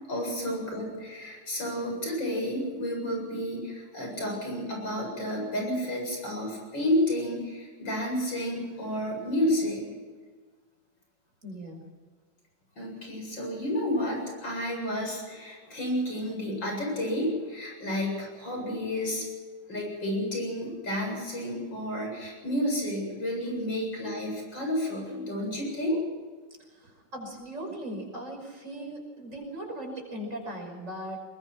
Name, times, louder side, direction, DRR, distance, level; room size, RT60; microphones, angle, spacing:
voice 1, 0.1-9.8 12.8-19.3 19.7-26.0, left 1 dB, 85° left, 0 dB, 8.5 m, -31 dB
voice 2, 11.4-11.9 25.5-25.6 26.8-31.2, right 1 dB, 40° right, 2 dB, 6.1 m, -38 dB
22.0 x 21.0 x 6.2 m, 1.5 s
omnidirectional pair, 2.0 m